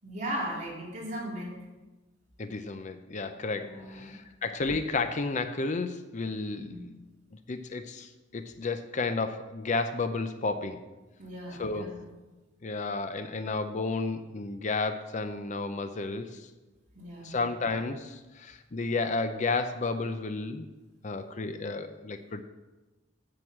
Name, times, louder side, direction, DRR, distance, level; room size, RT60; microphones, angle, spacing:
voice 1, 0.0-1.6 3.5-4.2 6.6-6.9 11.2-12.0 16.9-17.3, equal, 45° right, -5 dB, 3.8 m, -37 dB
voice 2, 2.4-6.9 7.5-10.8 11.6-11.9 12.6-16.4 17.2-20.7 21.0-22.4, left 3 dB, 40° left, 9 dB, 0.6 m, -32 dB
8.1 x 7.8 x 7.3 m, 1.1 s
head